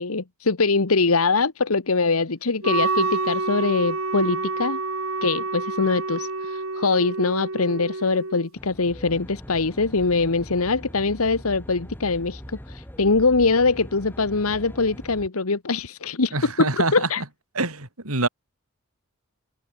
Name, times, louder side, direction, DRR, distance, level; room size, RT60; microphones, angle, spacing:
voice 1, 0.0-4.8 5.2-16.5 16.9-17.2, left 3 dB, 85° left, 1.3 m, -23 dB
Wind instrument woodwind instrument, 2.6-8.5, right 3 dB, 75° right, 4.0 m, -28 dB
Aircraft, 8.6-15.3, equal, 10° left, 3.5 m, -41 dB
voice 2, 16.3-17.2 17.6-18.3, right 3 dB, 90° right, 5.5 m, -25 dB
head